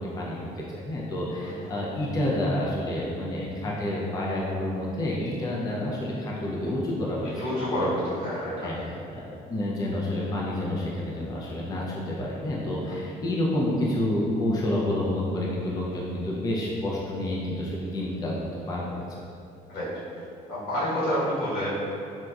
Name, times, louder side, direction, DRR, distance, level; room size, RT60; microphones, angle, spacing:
voice 1, 0.0-7.9 8.3-18.3 18.7-18.8 19.1-19.2, left 1 dB, 20° left, -4 dB, 0.4 m, -29 dB
voice 2, 7.4-8.7 12.8-13.0 19.7-19.9 20.5-21.7, equal, 75° left, -9 dB, 1.3 m, -28 dB
3.9 x 2.3 x 2.3 m, 2.6 s
cardioid pair, 110°, 17 cm